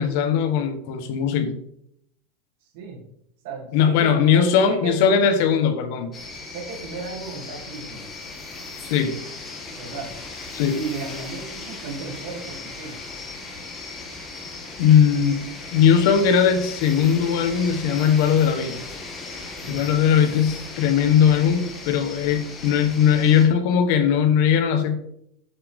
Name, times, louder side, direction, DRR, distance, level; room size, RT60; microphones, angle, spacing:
voice 1, 0.0-1.6 3.7-6.2 8.8-9.2 10.5-10.8 14.8-18.8 19.7-24.9, left 7 dB, 65° left, 8 dB, 1.2 m, -19 dB
voice 2, 2.6-3.0 3.4-5.2 6.5-8.1 9.8-10.1 10.7-13.0 19.6-19.8, right 3 dB, 70° right, 0 dB, 2.8 m, -34 dB
sound 1, 6.1-23.5, left 3 dB, 20° left, 2.3 m, -37 dB
8.5 x 7.0 x 3.7 m, 0.74 s
supercardioid pair, 140°, 0 cm